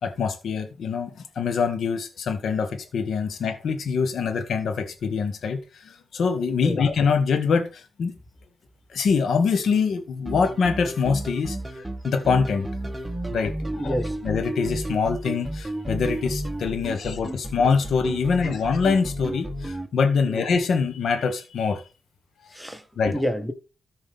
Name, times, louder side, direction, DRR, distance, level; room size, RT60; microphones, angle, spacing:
voice 1, 0.0-8.1 8.9-12.7 13.3-21.8 23.0-23.2, left 5 dB, 80° left, 1.4 m, -24 dB
sound 1, 10.3-19.9, right 1 dB, 10° right, 1.2 m, -32 dB
voice 2, 13.8-14.2 20.3-20.4 22.5-23.5, equal, 5° left, 1.7 m, -28 dB
13.5 x 5.0 x 3.7 m
cardioid pair, 55°, 0 cm